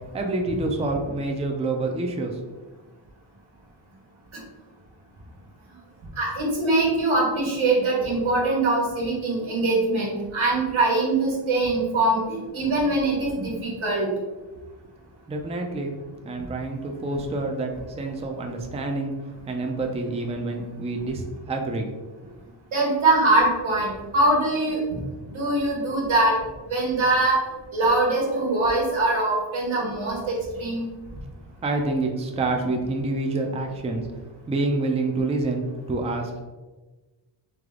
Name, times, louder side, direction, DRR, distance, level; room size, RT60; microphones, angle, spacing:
voice 1, 0.1-2.4 15.3-15.9 16.2-19.1 19.5-21.9 31.6-34.1 34.5-36.4, right 2 dB, 15° right, 2 dB, 0.4 m, -27 dB
voice 2, 6.2-14.1 17.1-17.2 22.7-24.8 25.3-26.3 26.7-27.4 27.7-30.8, right 2 dB, 85° right, -3 dB, 1.4 m, -22 dB
3.4 x 3.3 x 3.6 m, 1.2 s
wide cardioid pair, 145°, 47 cm